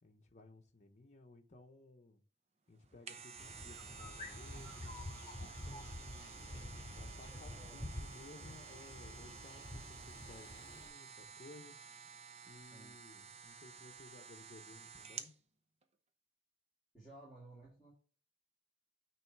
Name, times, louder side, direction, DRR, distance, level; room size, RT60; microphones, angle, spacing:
voice 1, 0.0-2.2 2.7-4.9 5.6-6.4 7.0-11.8 12.5-15.4, left 2 dB, 40° left, 3 dB, 0.8 m, -58 dB
sound 1, 2.8-15.4 15.8-15.9, right 6 dB, 35° right, 0.7 m, -52 dB
sound 2, 3.4-10.9, left 1 dB, 25° left, 2.4 m, -48 dB
voice 2, 6.3-6.7 7.3-8.0 12.6-13.0 16.9-17.9, right 2 dB, 5° right, -9 dB, 2.5 m, -58 dB
9.0 x 3.1 x 4.6 m, 0.42 s
head